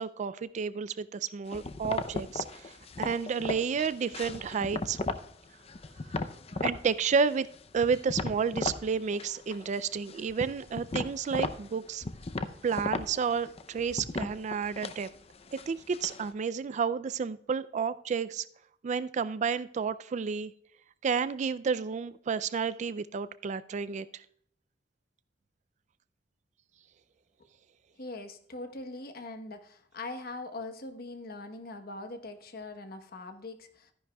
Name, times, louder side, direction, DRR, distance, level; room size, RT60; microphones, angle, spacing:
voice 1, 0.0-5.0 6.6-7.5 7.7-12.0 12.6-15.1 15.5-18.5 18.8-20.5 21.0-24.2, right 6 dB, 40° right, 16 dB, 0.3 m, -31 dB
sound 1, 1.5-5.3 5.7-6.8 7.2-8.8 9.1-9.8 10.1-16.3, left 3 dB, 35° left, 0.5 m, -36 dB
voice 2, 28.0-33.9, left 2 dB, 55° left, 7 dB, 1.1 m, -42 dB
13.5 x 10.0 x 2.3 m, 0.66 s
head